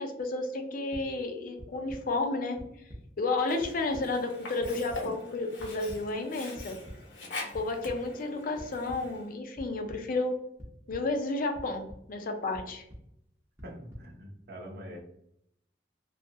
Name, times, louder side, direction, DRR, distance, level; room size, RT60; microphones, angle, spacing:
voice 1, 0.0-2.6 3.2-6.8 7.5-10.4 10.9-12.8, left 2 dB, 50° left, 5 dB, 0.4 m, -32 dB
sound 1, 0.9-1.0 1.6-2.0 2.6-3.0 3.4-4.0 4.6-5.0 5.6-6.0 6.5-7.0 7.5-7.9 8.6-9.0 9.5-10.0 10.6-11.0 11.5-12.0 12.5-13.0 13.6-14.0, equal, 15° right, 0.7 m, -44 dB
Sink (filling or washing), 3.4-9.3, left 2 dB, 80° left, 0.8 m, -44 dB
voice 2, 13.6-15.0, equal, 60° right, 0 dB, 0.7 m, -44 dB
2.8 x 2.3 x 2.6 m, 0.75 s
head